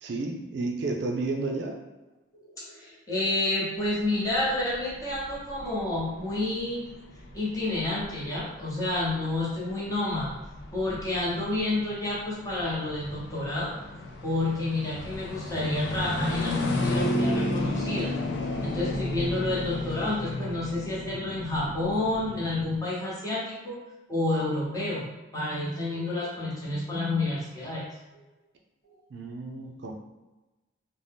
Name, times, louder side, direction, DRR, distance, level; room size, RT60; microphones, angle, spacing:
voice 1, 0.0-1.8 29.1-29.9, right 3 dB, 60° right, 0 dB, 0.4 m, -31 dB
voice 2, 2.3-6.9 7.3-10.4 10.7-13.7 14.2-18.1 18.6-23.8 24.1-27.9, left 2 dB, 20° left, -7 dB, 0.8 m, -29 dB
sound 1, 3.8-22.8, left 1 dB, 60° left, 0.4 m, -33 dB
2.6 x 2.1 x 3.3 m, 1.1 s
head